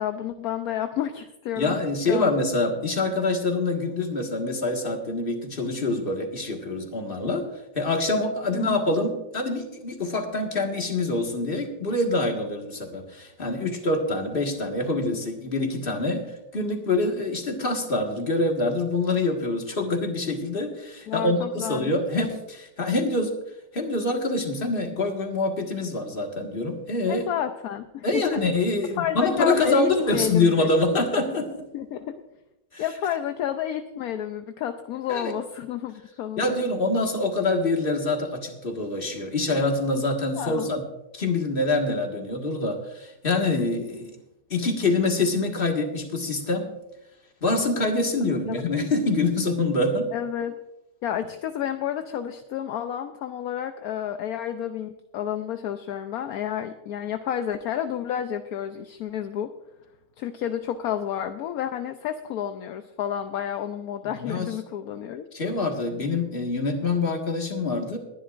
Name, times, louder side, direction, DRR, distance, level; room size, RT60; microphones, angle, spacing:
voice 1, 0.0-1.8 2.1-2.4 8.5-8.8 21.1-21.9 27.1-28.4 28.9-30.7 31.7-32.1 32.8-36.6 40.4-40.7 48.5-48.6 50.1-50.6 51.0-59.5 60.2-65.2, left 10 dB, 65° left, 8 dB, 1.0 m, -30 dB
voice 2, 1.6-7.4 7.7-16.2 16.5-23.3 23.7-27.2 28.0-31.5 32.7-32.8 35.1-35.3 36.4-40.8 41.1-44.1 44.5-46.7 47.4-50.1 64.2-64.5 65.3-68.0, left 2 dB, 30° left, 2 dB, 1.8 m, -25 dB
21.5 x 11.0 x 2.5 m, 0.93 s
omnidirectional pair, 2.0 m